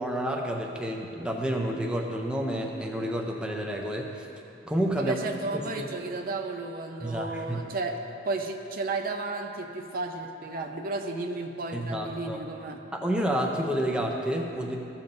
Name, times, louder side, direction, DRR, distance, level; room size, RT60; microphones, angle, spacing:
voice 1, 0.0-4.3 4.7-5.2 5.5-5.9 7.0-7.6 11.7-12.4 12.9-14.8, equal, 5° right, 0 dB, 0.5 m, -29 dB
voice 2, 5.0-12.8, right 3 dB, 45° right, 4 dB, 0.5 m, -33 dB
14.5 x 7.2 x 2.6 m, 2.7 s
head